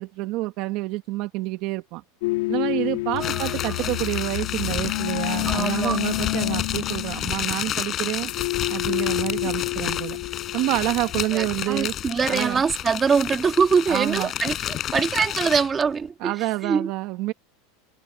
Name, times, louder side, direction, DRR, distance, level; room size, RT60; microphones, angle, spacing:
voice 1, 0.0-2.0 2.5-8.3 8.7-10.2 10.5-11.9 12.3-12.6 13.9-14.3 16.2-17.3, right 18 dB, 50° right, 1.5 m, -28 dB
sound 1, 2.2-11.3, left 19 dB, 75° left, 1.9 m, -29 dB
sound 2, 3.2-15.8, left 11 dB, 35° left, 6.5 m, -30 dB
voice 2, 3.2-3.5 5.5-6.0 11.3-14.6 14.9-16.3 16.6-16.9, right 5 dB, 20° right, 2.0 m, -23 dB
supercardioid pair, 140°, 0 cm